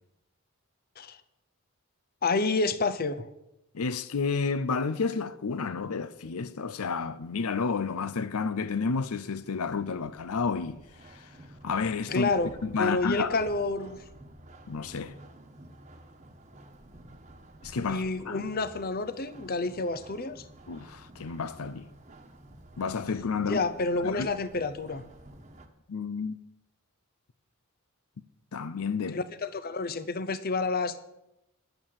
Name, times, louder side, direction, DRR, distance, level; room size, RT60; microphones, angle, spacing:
voice 1, 2.2-3.3 12.1-12.5 12.8-14.0 17.9-20.4 23.4-25.0 29.1-31.0, left 3 dB, 45° left, 0.7 m, -29 dB
voice 2, 3.7-11.3 11.6-12.3 12.6-13.3 14.7-15.2 17.6-18.4 20.7-21.9 22.8-23.6 24.0-24.3 25.9-26.4 28.5-29.2, left 5 dB, 85° left, 0.6 m, -31 dB
sound 1, 9.0-25.7, right 1 dB, 30° right, 1.2 m, -51 dB
10.5 x 8.9 x 7.4 m
head